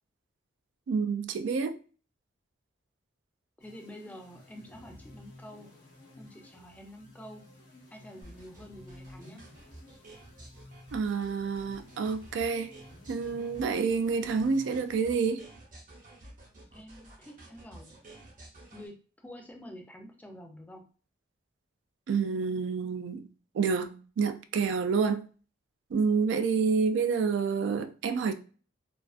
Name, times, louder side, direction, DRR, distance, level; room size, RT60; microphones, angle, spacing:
voice 1, 0.9-1.8 10.9-12.7 13.1-15.5 22.1-23.3 23.5-25.2 25.9-28.3, right 5 dB, 75° right, 0.3 m, -28 dB
sound 1, 3.6-15.4, left 1 dB, 75° left, 0.7 m, -54 dB
voice 2, 3.6-5.7 6.2-7.4 7.9-9.4 16.7-17.9 18.7-20.8, equal, 10° left, 0.4 m, -48 dB
sound 2, 8.2-18.9, right 1 dB, 45° right, 0.8 m, -51 dB
2.4 x 2.3 x 2.4 m
head